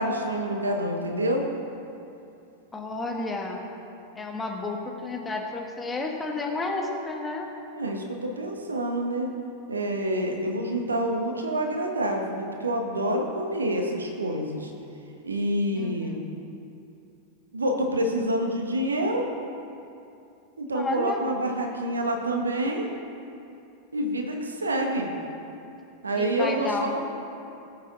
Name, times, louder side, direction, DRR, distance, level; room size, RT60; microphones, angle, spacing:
voice 1, 0.0-1.5 7.7-9.3 9.7-14.7 15.2-16.1 17.5-19.3 20.6-22.9 23.9-25.1 26.0-27.0, right 1 dB, 75° right, 2 dB, 1.5 m, -27 dB
voice 2, 2.7-3.6 4.2-7.5 15.7-16.3 20.7-21.2 26.2-27.0, left 3 dB, 15° left, 1 dB, 1.6 m, -31 dB
19.0 x 8.3 x 3.9 m, 2.7 s
figure-of-eight pair, 90°, 0 cm